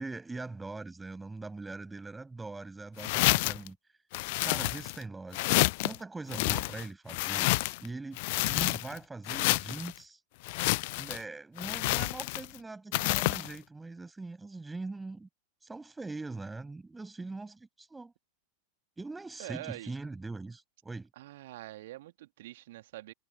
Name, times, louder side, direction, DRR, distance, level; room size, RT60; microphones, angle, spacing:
voice 1, 0.0-3.8 4.4-7.5 7.8-10.2 10.9-15.3 15.6-18.1 19.0-21.1, right 3 dB, 10° right, 7.8 m, -42 dB
sound 1, 3.0-3.7 4.1-5.0 5.3-6.0 6.3-7.9 8.2-9.0 9.3-9.9 10.4-11.2 11.6-12.6 12.9-13.5, left 24 dB, 50° left, 0.6 m, -29 dB
voice 2, 19.4-19.9 21.2-23.1, right 16 dB, 55° right, 2.4 m, -44 dB
figure-of-eight pair, 90°, 0 cm